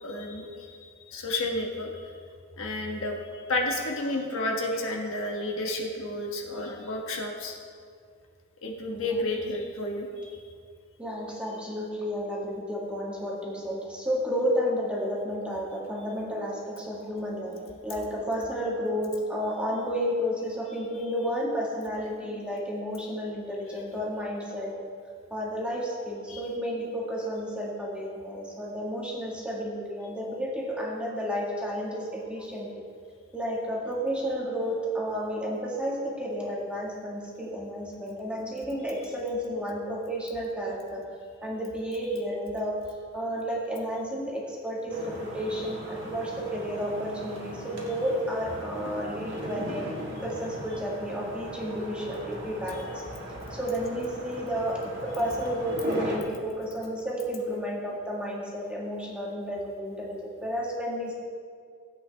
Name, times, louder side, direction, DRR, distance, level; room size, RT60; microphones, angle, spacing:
voice 1, 0.0-2.1 2.6-7.5 8.6-10.4 26.3-26.4, left 2 dB, 65° left, 0 dB, 1.4 m, -31 dB
voice 2, 11.0-24.7 25.3-32.7 33.3-41.0 41.4-42.8 43.1-49.8 50.2-53.0 53.5-61.1, equal, 5° right, -4 dB, 1.8 m, -32 dB
sound 1, 44.9-56.2, equal, 55° right, 1.8 m, -38 dB
16.5 x 8.4 x 3.4 m, 2.2 s
head